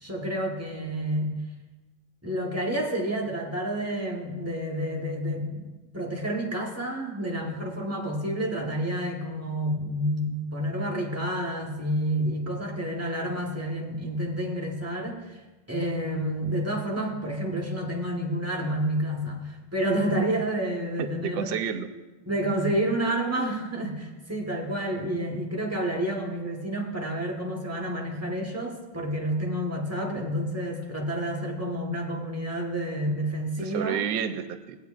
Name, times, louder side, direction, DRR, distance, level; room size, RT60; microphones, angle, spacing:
voice 1, 0.0-1.4 2.2-15.4 15.7-21.5 22.3-34.0, right 1 dB, 15° right, -1 dB, 0.7 m, -29 dB
voice 2, 21.0-21.9 33.6-34.8, right 8 dB, 75° right, 9 dB, 1.3 m, -30 dB
16.0 x 9.2 x 2.4 m, 1.2 s
omnidirectional pair, 2.2 m